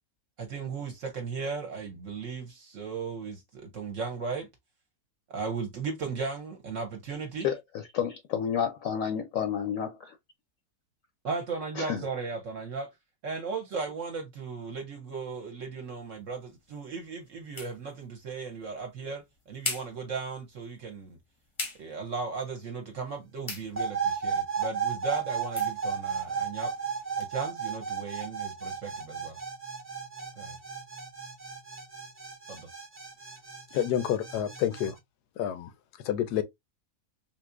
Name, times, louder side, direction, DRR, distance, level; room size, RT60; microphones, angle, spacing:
voice 1, 0.4-4.5 5.3-7.5 11.2-12.9 13.2-21.2 21.8-26.7 27.2-29.4 30.4-30.6 32.5-32.7, right 4 dB, 60° right, 0.9 m, -36 dB
voice 2, 7.4-9.9 11.8-12.0, left 8 dB, 70° left, 0.9 m, -30 dB
Finger Clap, 15.8-27.3, left 2 dB, 30° left, 0.6 m, -44 dB
sound 1, 23.8-34.9, right 6 dB, 15° right, 0.4 m, -34 dB
voice 3, 33.7-35.0 35.4-35.7 36.0-36.4, left 10 dB, 90° left, 1.2 m, -28 dB
3.7 x 2.7 x 2.4 m
omnidirectional pair, 1.7 m